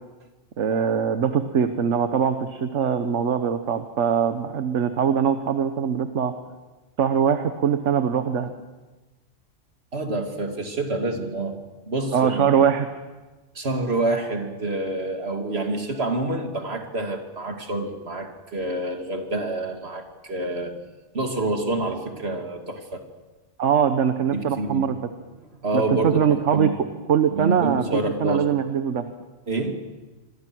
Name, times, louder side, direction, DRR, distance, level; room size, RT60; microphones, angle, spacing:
voice 1, 0.6-6.3 7.0-8.5 12.1-12.9 23.6-25.0 25.7-26.7 27.1-29.1, right 7 dB, 70° right, 8 dB, 1.4 m, -22 dB
voice 2, 9.9-12.5 13.5-20.9 21.1-23.0 24.3-24.9 25.6-26.8 27.3-28.5 29.5-29.7, right 2 dB, 55° right, 4 dB, 2.8 m, -27 dB
27.5 x 22.0 x 6.2 m, 1.2 s
omnidirectional pair, 1.3 m